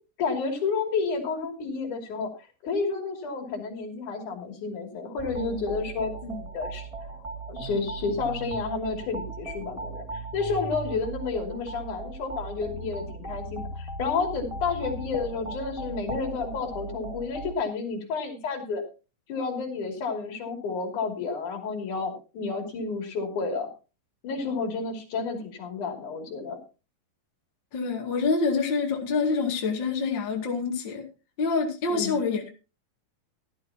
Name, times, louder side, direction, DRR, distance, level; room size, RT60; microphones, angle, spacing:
voice 1, 0.2-2.3 2.6-6.9 7.5-18.8 19.3-23.7 24.2-26.6 31.9-32.2, left 4 dB, 65° left, 3 dB, 4.2 m, -31 dB
sound 1, 5.2-17.5, right 2 dB, 60° right, 0.3 m, -37 dB
voice 2, 27.7-31.1 31.4-32.5, left 4 dB, 35° left, 1 dB, 2.6 m, -26 dB
17.0 x 12.5 x 2.9 m, 0.32 s
omnidirectional pair, 3.9 m